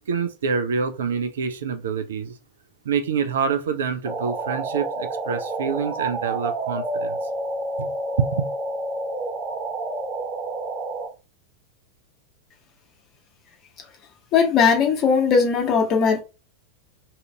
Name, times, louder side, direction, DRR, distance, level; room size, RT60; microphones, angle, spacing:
voice 1, 0.1-2.4 2.8-7.2 7.8-7.9 8.2-8.5, right 6 dB, 65° right, 0.4 m, -26 dB
sound 1, 4.0-11.1, right 2 dB, 45° right, 1.1 m, -29 dB
voice 2, 14.3-16.2, left 6 dB, 35° left, 0.9 m, -18 dB
2.7 x 2.5 x 3.2 m
figure-of-eight pair, 90°, 0 cm